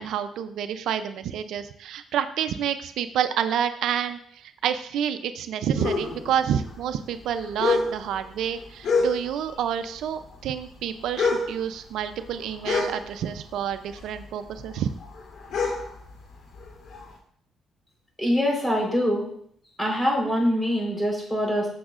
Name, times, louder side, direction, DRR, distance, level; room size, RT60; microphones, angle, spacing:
voice 1, 0.0-14.9, right 9 dB, 80° right, 10 dB, 0.5 m, -28 dB
sound 1, 5.7-9.6 9.8-13.6 13.9-17.1, left 4 dB, 75° left, 3.3 m, -28 dB
voice 2, 18.2-19.3 19.8-21.7, equal, 10° left, -1 dB, 4.0 m, -24 dB
15.0 x 6.3 x 2.5 m, 0.65 s
cardioid pair, 90°, 0 cm